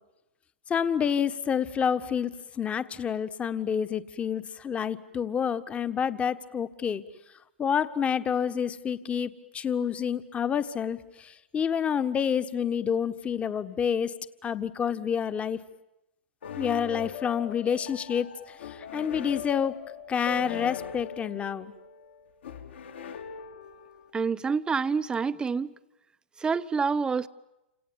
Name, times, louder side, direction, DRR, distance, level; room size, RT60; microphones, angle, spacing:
voice 1, 0.7-7.0 7.6-14.1 14.4-15.6 16.6-18.3 18.6-19.7 20.1-21.7, left 7 dB, 20° left, 11 dB, 1.6 m, -28 dB
sound 1, 16.4-24.1, left 7 dB, 70° left, 4.5 m, -40 dB
voice 2, 24.1-25.7 26.4-27.3, right 5 dB, 15° right, 14 dB, 1.0 m, -27 dB
30.0 x 27.5 x 7.3 m, 0.94 s
hypercardioid pair, 110°, 6 cm